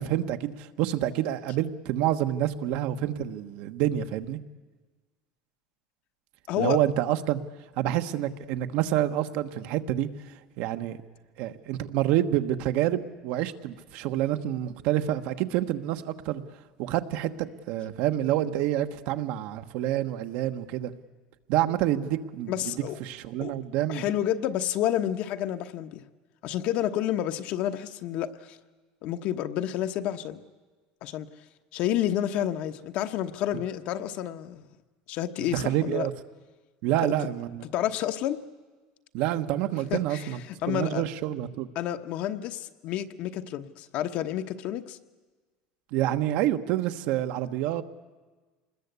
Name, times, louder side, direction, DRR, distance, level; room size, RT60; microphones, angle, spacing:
voice 1, 0.0-4.4 6.6-7.4 7.8-10.1 10.6-11.0 11.4-16.4 16.8-20.9 21.5-22.7 23.0-24.1 35.5-36.1 36.8-37.7 39.1-40.4 40.7-41.7 45.9-47.8, right 12 dB, 60° right, 9 dB, 1.2 m, -28 dB
voice 2, 6.5-6.8 22.5-23.0 23.4-23.6 23.9-26.0 26.4-28.6 29.0-30.4 31.0-31.3 31.7-34.6 35.1-36.1 37.0-37.1 37.7-38.4 39.9-41.0 41.7-45.0, left 11 dB, 50° left, 9 dB, 1.1 m, -30 dB
26.0 x 20.5 x 8.2 m, 1.3 s
cardioid pair, 165°, 3 cm